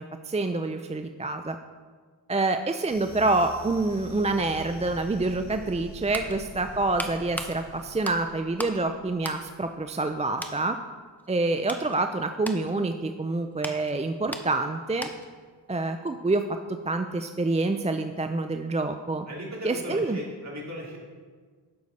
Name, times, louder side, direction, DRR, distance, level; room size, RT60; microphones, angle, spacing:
voice 1, 0.0-1.6 2.3-10.8 11.3-15.1 15.7-16.6 16.9-19.3 19.6-20.2, right 2 dB, 15° right, 7 dB, 0.3 m, -27 dB
sound 1, 2.9-10.4, equal, 85° right, 1.5 m, -46 dB
sound 2, 6.1-8.8 9.2-10.1 10.4-10.6 11.2-15.4 15.7-15.9, equal, 5° left, 0.8 m, -39 dB
voice 2, 19.3-21.0, equal, 35° right, -4 dB, 2.8 m, -37 dB
11.0 x 6.7 x 4.1 m, 1.5 s
wide cardioid pair, 85°, 45 cm